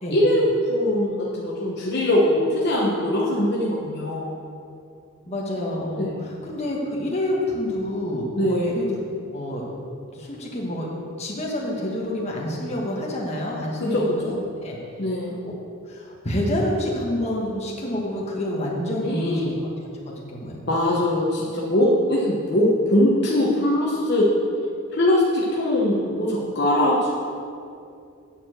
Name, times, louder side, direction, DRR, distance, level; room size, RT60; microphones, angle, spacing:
voice 1, 0.1-4.4 6.0-6.1 8.4-8.7 13.8-14.4 15.0-15.3 19.0-19.5 20.7-24.3 24.9-27.1, left 1 dB, 50° left, -5 dB, 1.1 m, -21 dB
voice 2, 5.2-9.0 9.3-9.6 10.1-10.9 11.2-14.3 14.6-14.8 15.4-15.5 15.9-19.5 20.1-20.6, left 1 dB, 30° left, -3 dB, 1.5 m, -28 dB
9.1 x 4.7 x 7.6 m, 2.5 s
head